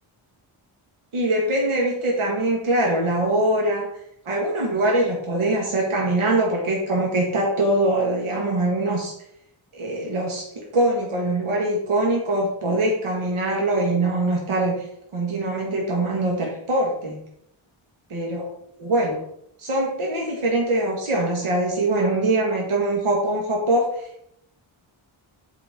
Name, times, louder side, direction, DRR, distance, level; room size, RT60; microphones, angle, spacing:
voice 1, 1.1-3.9 4.3-9.1 9.7-14.8 15.1-17.2 18.1-18.5 18.8-19.2 19.6-24.3, right 1 dB, 85° right, -1 dB, 2.0 m, -23 dB
8.2 x 4.8 x 5.2 m, 0.74 s
wide cardioid pair, 150°, 49 cm